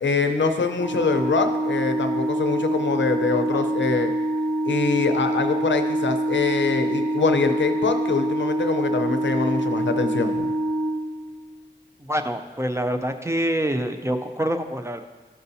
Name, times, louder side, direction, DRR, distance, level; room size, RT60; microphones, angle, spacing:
voice 1, 0.0-4.1 4.6-10.5, left 4 dB, 75° left, 6 dB, 0.7 m, -24 dB
Organ, 0.7-11.6, right 1 dB, 60° right, 2.0 m, -25 dB
voice 2, 3.2-3.7 3.9-4.0 12.0-15.0, equal, 15° right, 6 dB, 0.5 m, -26 dB
13.0 x 5.5 x 2.7 m, 1.3 s
wide cardioid pair, 75°, 19 cm